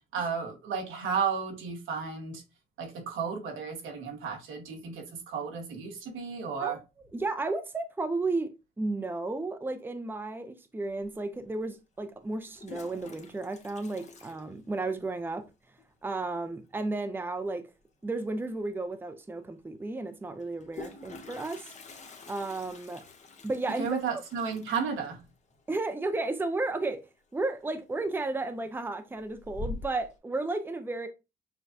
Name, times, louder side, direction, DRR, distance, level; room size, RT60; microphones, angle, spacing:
voice 1, 0.1-2.4 2.8-6.8 23.8-25.2, right 6 dB, 85° right, 1.4 m, -33 dB
voice 2, 7.1-8.5 8.8-15.4 16.0-17.6 18.0-21.7 22.3-23.0 23.4-23.9 25.7-27.0 27.3-31.1, right 2 dB, 10° right, 0.6 m, -33 dB
Toilet flush, 11.0-11.1 12.3-15.2 15.4-15.5 15.8-15.9 16.2-16.5 18.3-18.4 18.7-18.8 20.4-27.0 27.3-27.8 28.2-28.7 29.1-30.1, left 3 dB, 35° left, 0.9 m, -46 dB
6.6 x 2.3 x 2.6 m
cardioid pair, 90°, 20 cm